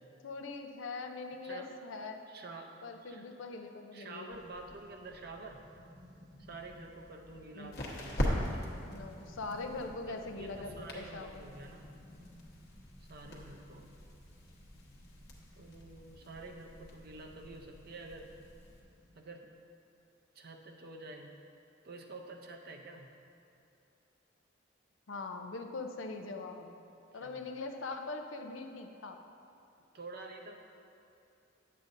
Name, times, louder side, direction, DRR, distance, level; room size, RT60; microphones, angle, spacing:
voice 1, 0.2-2.2 2.8-4.4 7.5-7.8 8.8-11.4 13.2-13.6 25.1-26.7 27.1-29.2, left 3 dB, 75° left, 5 dB, 0.6 m, -42 dB
voice 2, 2.3-3.3 3.9-5.6 6.4-8.7 9.7-11.9 13.0-14.0 15.6-18.3 19.1-19.5 20.3-21.3 21.8-23.1 27.2-27.4 29.9-30.6, right 2 dB, 50° right, 3 dB, 0.6 m, -48 dB
sound 1, 4.3-19.2, equal, 20° right, 1.0 m, -57 dB
sound 2, 6.4-18.8, equal, 50° left, 1.1 m, -42 dB
9.6 x 7.6 x 2.6 m, 2.6 s
head